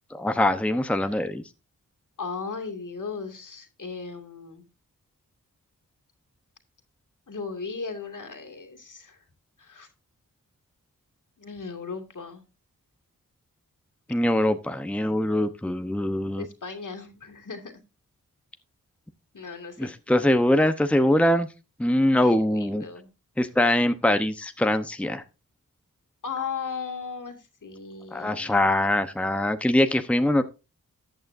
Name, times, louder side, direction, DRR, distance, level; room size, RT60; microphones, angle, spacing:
voice 1, 0.1-1.4 14.1-16.4 19.8-21.5 21.8-22.8 23.4-25.2 28.1-30.4, left 1 dB, 5° left, 9 dB, 0.9 m, -23 dB
voice 2, 2.2-4.7 7.3-9.2 9.6-9.9 11.4-12.4 16.4-17.7 19.3-19.9 22.1-23.1 26.2-28.6, left 5 dB, 65° left, 4 dB, 2.5 m, -36 dB
14.0 x 8.7 x 2.7 m, 0.28 s
cardioid pair, 55°, 34 cm